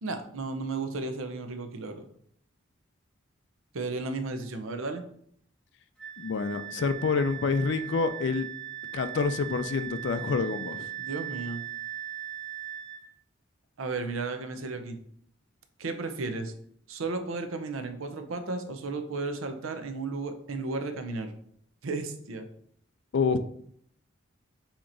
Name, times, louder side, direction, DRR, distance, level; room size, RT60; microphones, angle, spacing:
voice 1, 0.0-2.1 3.7-5.0 11.0-11.6 13.8-15.0 15.8-16.5 16.9-21.3 21.8-22.5, right 3 dB, 90° right, 7 dB, 0.6 m, -34 dB
Wind instrument woodwind instrument, 6.0-13.0, right 11 dB, 5° left, 0.8 m, -39 dB
voice 2, 6.2-8.5 8.9-10.9 23.1-23.4, left 4 dB, 60° left, 11 dB, 0.4 m, -27 dB
7.2 x 2.9 x 2.6 m, 0.65 s
head